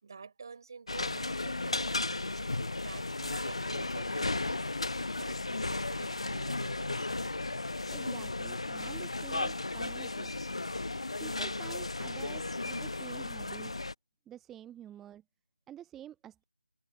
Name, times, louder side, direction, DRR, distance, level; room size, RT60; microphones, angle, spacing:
voice 1, 0.0-7.3, right 5 dB, 35° right, 3.8 m, -49 dB
sound 1, 0.9-13.9, left 2 dB, 60° left, 1.0 m, -35 dB
voice 2, 7.9-10.4 11.2-13.9 14.3-15.2 15.7-16.4, right 11 dB, 5° right, 0.3 m, -49 dB
figure-of-eight pair, 160°, 3 cm